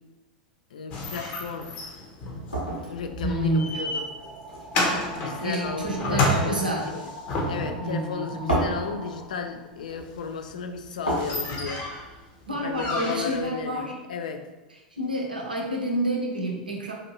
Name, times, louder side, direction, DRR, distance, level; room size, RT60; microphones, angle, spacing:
voice 1, 0.7-1.7 2.9-4.1 5.1-7.1 7.5-11.8 12.6-14.4, left 6 dB, 65° left, 6 dB, 0.4 m, -34 dB
sound 1, 0.9-13.8, right 1 dB, 85° left, 1.0 m, -36 dB
sound 2, 0.9-7.9 10.3-10.4 10.8-10.9 11.0-12.1 12.7-13.5, left 1 dB, 40° left, 0.7 m, -30 dB
sound 3, 2.1-9.8, right 1 dB, 20° right, 0.8 m, -43 dB
voice 2, 3.2-3.7 5.4-6.9 7.8-8.5 12.5-14.0 15.0-16.9, right 1 dB, 80° right, 0 dB, 0.6 m, -28 dB
3.9 x 2.5 x 2.9 m, 1.1 s
figure-of-eight pair, 85°, 5 cm